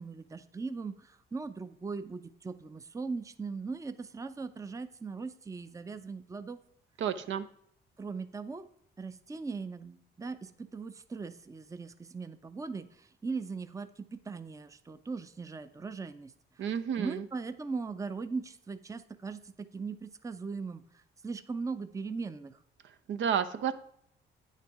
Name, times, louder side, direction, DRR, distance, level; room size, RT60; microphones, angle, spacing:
voice 1, 0.0-6.6 8.0-8.7 9.0-16.3 16.6-16.7 17.0-22.6, right 4 dB, 15° right, 11 dB, 0.5 m, -39 dB
voice 2, 7.0-7.5 16.6-17.2 23.1-23.7, right 8 dB, 70° right, 10 dB, 0.7 m, -31 dB
9.0 x 6.6 x 4.7 m, 0.67 s
cardioid pair, 90°, 20 cm